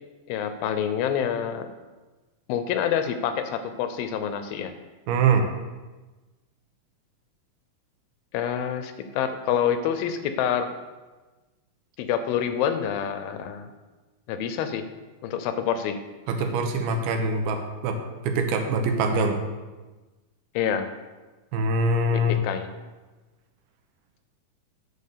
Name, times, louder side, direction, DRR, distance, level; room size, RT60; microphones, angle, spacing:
voice 1, 0.3-1.7 2.5-4.7 8.3-10.7 12.0-13.7 14.3-14.8 15.2-16.0 20.6-20.9 22.1-22.7, left 8 dB, 80° left, 9 dB, 2.3 m, -27 dB
voice 2, 5.1-5.5 16.3-18.0 18.2-19.4 21.5-22.4, right 2 dB, 80° right, 5 dB, 2.8 m, -23 dB
11.0 x 4.0 x 6.7 m, 1.2 s
omnidirectional pair, 4.4 m